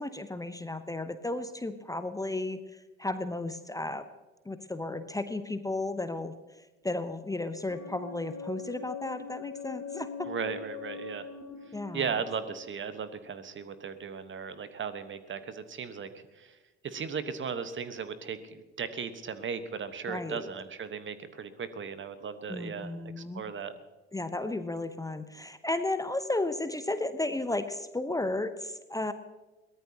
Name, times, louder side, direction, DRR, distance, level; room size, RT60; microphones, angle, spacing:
voice 1, 0.0-4.1 4.5-10.3 11.7-12.1 20.1-20.5 22.5-23.4 24.1-29.1, left 2 dB, 10° left, 10 dB, 0.9 m, -34 dB
sound 1, 7.7-13.5, left 5 dB, 35° left, 3.4 m, -42 dB
voice 2, 10.2-11.3 11.9-16.6 16.8-23.7, right 6 dB, 35° right, 12 dB, 1.3 m, -37 dB
22.5 x 18.0 x 2.9 m, 1.2 s
figure-of-eight pair, 50°, 34 cm